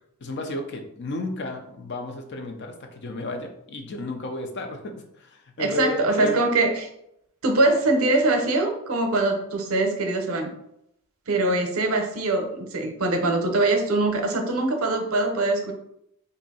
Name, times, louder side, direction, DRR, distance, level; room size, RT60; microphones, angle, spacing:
voice 1, 0.2-6.4, left 2 dB, 50° left, 4 dB, 0.5 m, -33 dB
voice 2, 5.6-6.9 7.4-10.5 11.3-15.7, right 2 dB, 70° right, 4 dB, 0.7 m, -23 dB
2.8 x 2.6 x 4.1 m, 0.76 s
head